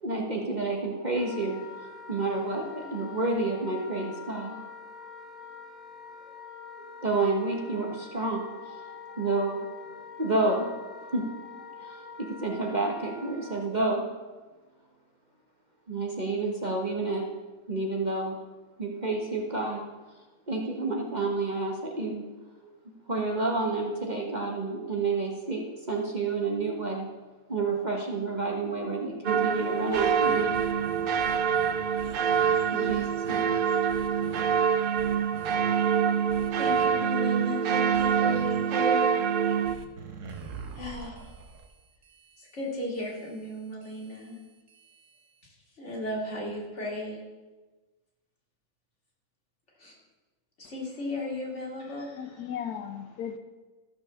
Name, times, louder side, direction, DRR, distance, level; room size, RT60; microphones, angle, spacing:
voice 1, 0.0-4.6 6.3-6.4 6.8-9.7 10.2-14.1 15.9-17.2 17.7-18.4 18.8-19.8 20.5-22.2 22.6-22.8 23.1-27.1 27.5-30.5 32.7-33.5 34.1-34.3, right 3 dB, 30° right, 0 dB, 1.3 m, -30 dB
Wind instrument woodwind instrument, 1.1-13.6, left 5 dB, ahead, 2.3 m, -45 dB
Church-bell clock in small village, 29.2-39.7, right 7 dB, 75° right, 0.5 m, -25 dB
sound 1, 29.9-32.5 32.9-33.5 33.9-34.4 35.0-35.6 36.3-36.9 37.9-38.5 39.6-45.5, right 6 dB, 55° right, 1.3 m, -45 dB
voice 2, 36.6-39.2 40.7-41.3 42.4-44.3 45.4-47.2 49.8-50.0 50.6-52.2, left 1 dB, 45° left, -3 dB, 3.0 m, -35 dB
voice 3, 52.1-53.4, left 8 dB, 80° left, 8 dB, 1.3 m, -36 dB
14.0 x 6.1 x 7.0 m, 1.2 s
omnidirectional pair, 1.6 m